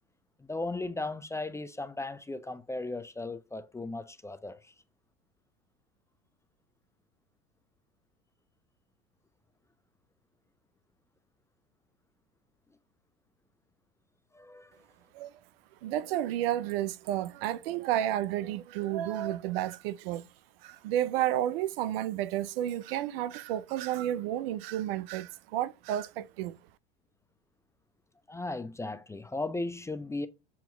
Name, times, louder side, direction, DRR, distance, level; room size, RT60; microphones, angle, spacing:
voice 1, 0.4-4.7 14.3-14.9 28.3-30.3, left 2 dB, 10° left, 0.5 m, -36 dB
voice 2, 15.8-20.3 20.6-26.6, right 12 dB, 65° right, 0.6 m, -31 dB
7.3 x 3.0 x 4.6 m
hypercardioid pair, 85°, 32 cm